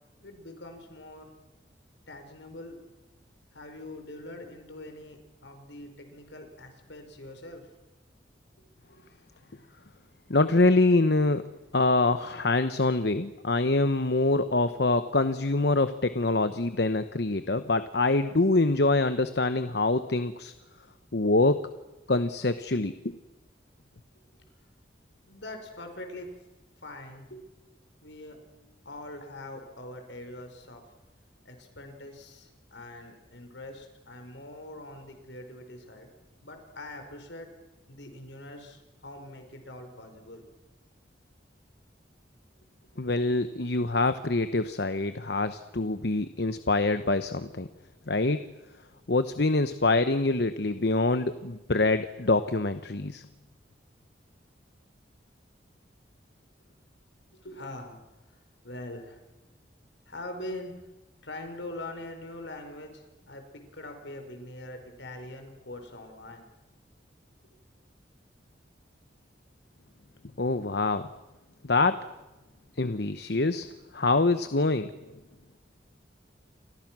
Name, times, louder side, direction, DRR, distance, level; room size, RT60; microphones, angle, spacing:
voice 1, 0.2-1.3 2.1-2.8 3.5-7.7 8.9-9.0 24.3-24.5 25.3-26.4 26.8-27.5 28.0-28.4 28.8-30.8 31.4-36.1 36.4-37.5 37.9-40.4 57.3-58.0 58.6-59.2 60.1-60.8 61.2-66.5 67.4-67.5, left 1 dB, 80° left, 6 dB, 5.1 m, -43 dB
voice 2, 10.3-20.5 21.1-21.7 22.1-23.1 43.0-47.7 48.1-48.5 49.1-53.2 70.4-71.1 71.6-72.1 72.8-73.7 73.9-74.9, left 2 dB, 65° left, 11 dB, 1.0 m, -25 dB
30.0 x 25.0 x 6.2 m, 1.1 s
head